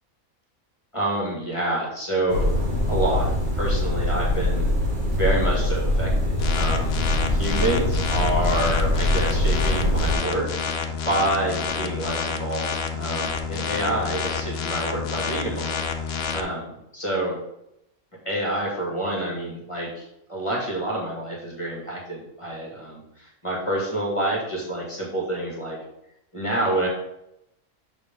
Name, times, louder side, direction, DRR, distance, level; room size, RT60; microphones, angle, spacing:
voice 1, 0.9-2.5 2.9-3.3 3.6-4.6 5.1-15.7 16.0-17.3 18.2-25.8 26.3-26.9, right 1 dB, 20° left, -3 dB, 2.3 m, -28 dB
sound 1, 2.3-10.1, left 1 dB, 35° right, 1.8 m, -23 dB
sound 2, 6.4-16.4, left 6 dB, 55° left, 0.9 m, -29 dB
6.7 x 5.0 x 5.6 m, 0.82 s
omnidirectional pair, 1.4 m